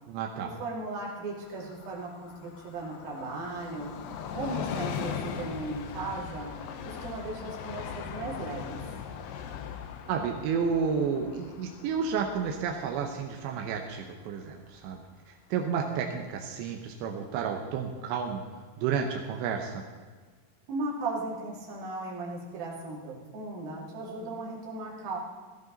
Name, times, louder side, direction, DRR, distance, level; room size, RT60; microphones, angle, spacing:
voice 1, 0.1-0.5 10.1-18.4 18.8-19.8, right 6 dB, 85° right, 2 dB, 3.2 m, -31 dB
voice 2, 0.6-3.9 4.3-6.5 6.8-8.8 20.7-25.2, right 2 dB, 60° right, -3 dB, 4.2 m, -36 dB
Train, 1.4-14.7 15.1-15.2, left 7 dB, 75° left, 2.6 m, -40 dB
15.5 x 14.5 x 4.0 m, 1.5 s
omnidirectional pair, 5.0 m